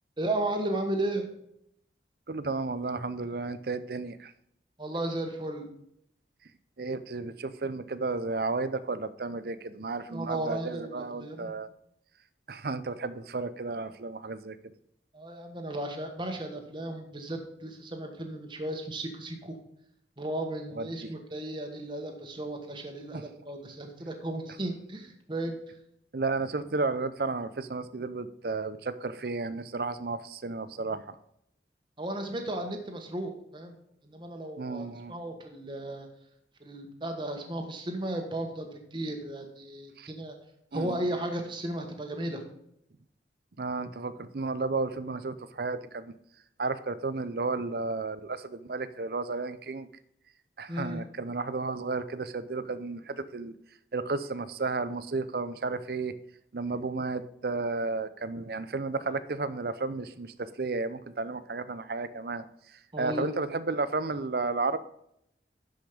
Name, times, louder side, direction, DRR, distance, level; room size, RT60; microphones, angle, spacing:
voice 1, 0.2-1.2 4.8-5.7 10.1-11.5 15.1-19.6 20.2-25.6 32.0-33.7 34.0-36.1 36.6-40.3 40.7-42.4 50.7-51.0 62.9-63.3, right 1 dB, 25° right, 4 dB, 1.3 m, -35 dB
voice 2, 2.3-4.3 6.8-11.7 12.5-14.6 20.8-21.1 23.1-23.2 26.1-31.2 34.6-35.1 40.0-40.1 40.7-41.0 43.6-46.1 46.6-49.9 50.6-53.5 53.9-56.1 56.5-62.4 62.7-64.8, right 3 dB, 60° right, 14 dB, 0.6 m, -33 dB
12.0 x 5.3 x 5.1 m, 0.75 s
head